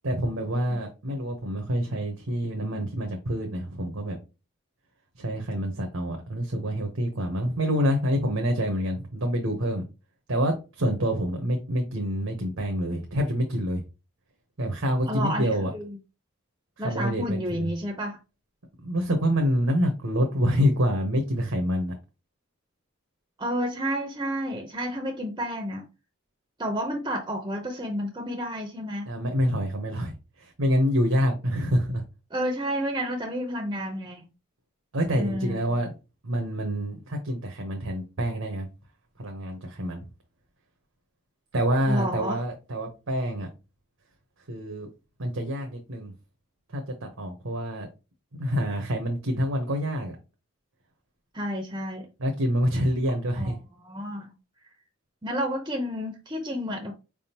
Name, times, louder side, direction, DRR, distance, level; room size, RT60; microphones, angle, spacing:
voice 1, 0.0-4.2 5.2-9.8 10.3-13.8 14.6-15.7 16.8-17.7 18.8-21.9 29.1-32.0 34.9-35.9 36.2-38.6 39.2-40.0 41.5-43.5 44.5-44.9 45.2-46.1 46.7-47.9 48.4-50.2 52.2-53.6, equal, 80° right, 1.0 m, -27 dB
voice 2, 15.1-16.0 16.8-18.2 23.4-25.9 26.6-29.1 32.3-34.3 35.2-35.8 41.9-42.4 51.3-52.1 53.3-54.3 55.2-56.9, equal, 20° right, 0.6 m, -30 dB
4.8 x 3.6 x 2.9 m
head